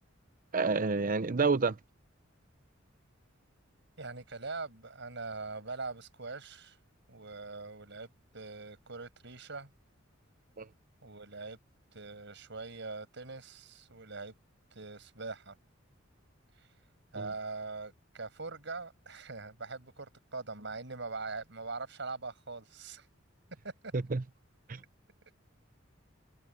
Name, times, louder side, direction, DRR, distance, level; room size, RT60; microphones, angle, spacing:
voice 1, 0.5-1.8 10.6-10.7 17.2-17.3 23.9-24.2 24.7-24.8, right 4 dB, 45° right, 0.7 m, -29 dB
voice 2, 4.0-6.8 7.1-8.1 8.3-9.7 11.0-11.6 11.9-14.3 14.7-15.6 16.5-16.9 17.1-23.1 23.6-23.9 25.3-25.4, right 3 dB, 65° right, 6.7 m, -42 dB
head